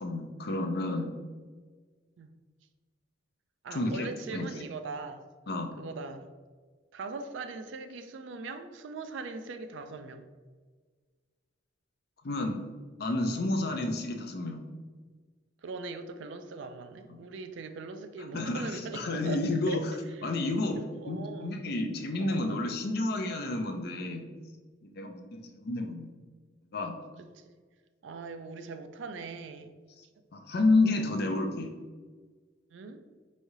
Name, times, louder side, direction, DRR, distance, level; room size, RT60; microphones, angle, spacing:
voice 1, 0.0-1.1 3.7-4.5 5.5-5.7 12.2-12.6 13.0-14.6 18.3-19.9 20.2-20.8 21.1-24.3 24.8-26.1 26.7-27.0 30.3-31.7, left 2 dB, 55° left, 4 dB, 0.5 m, -30 dB
voice 2, 3.6-5.3 5.8-6.3 6.9-10.3 15.6-20.3 20.8-21.6 22.2-22.7 27.3-27.5 28.0-29.7 31.1-31.2 32.7-33.0, right 3 dB, 70° right, 8 dB, 0.4 m, -41 dB
4.7 x 3.1 x 2.7 m, 1.5 s
head